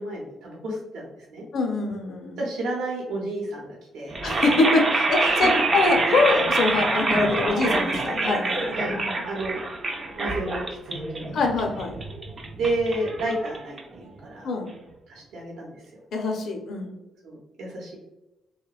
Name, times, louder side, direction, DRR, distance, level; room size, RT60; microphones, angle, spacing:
voice 1, 0.0-1.4 2.4-4.2 5.2-5.6 8.7-9.0 9.3-9.6 10.2-11.4 12.6-14.5 15.1-16.0 17.2-18.0, right 2 dB, 80° right, -3 dB, 0.7 m, -31 dB
voice 2, 1.5-2.4 4.2-8.8 9.1-9.2 11.3-12.0 14.4-14.7 16.1-16.9, left 3 dB, 65° left, 2 dB, 0.5 m, -24 dB
sound 1, 4.1-14.2, right 3 dB, 40° right, 0.4 m, -26 dB
2.8 x 2.1 x 2.3 m, 0.99 s
cardioid pair, 90°, 0 cm